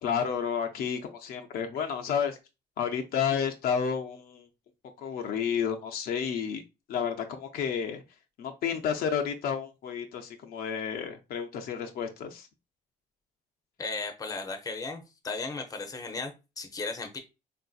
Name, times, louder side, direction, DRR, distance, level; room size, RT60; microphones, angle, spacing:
voice 1, 0.0-2.4 2.8-4.5 5.0-6.6 6.9-8.0 8.4-12.5, left 7 dB, 60° left, 4 dB, 0.5 m, -31 dB
voice 2, 13.8-17.2, left 4 dB, 20° left, 6 dB, 0.6 m, -36 dB
3.7 x 2.6 x 2.3 m, 0.26 s
cardioid pair, 110°, 17 cm